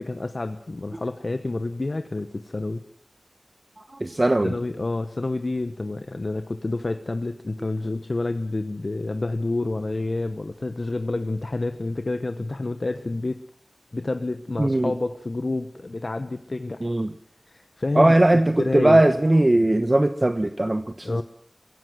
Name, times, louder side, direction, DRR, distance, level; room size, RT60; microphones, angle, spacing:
voice 1, 0.0-2.8 4.4-13.4 13.9-16.8 17.5-18.2 18.6-19.1 21.0-21.2, left 2 dB, 70° left, 9 dB, 1.0 m, -28 dB
voice 2, 4.0-4.6 14.6-14.9 16.8-17.1 17.9-21.2, right 1 dB, 45° right, 9 dB, 1.1 m, -19 dB
22.5 x 17.0 x 7.8 m, 0.64 s
wide cardioid pair, 40°, 0 cm